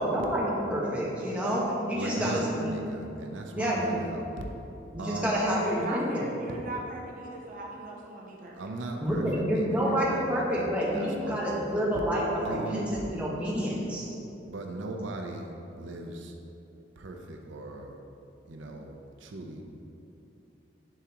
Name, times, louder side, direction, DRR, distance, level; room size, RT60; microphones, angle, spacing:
voice 1, 0.0-2.7 3.5-4.0 4.9-6.3 9.0-14.1, equal, 5° right, -6 dB, 1.0 m, -28 dB
voice 2, 1.9-4.4 5.0-5.3 8.5-10.7 10.9-11.8 12.4-12.9 14.5-16.3 17.0-18.0 18.5-18.9 19.2-19.6, right 2 dB, 90° right, 2 dB, 0.6 m, -38 dB
voice 3, 5.6-8.7, right 1 dB, 45° right, -2 dB, 0.6 m, -38 dB
10.0 x 3.7 x 2.9 m, 2.9 s
head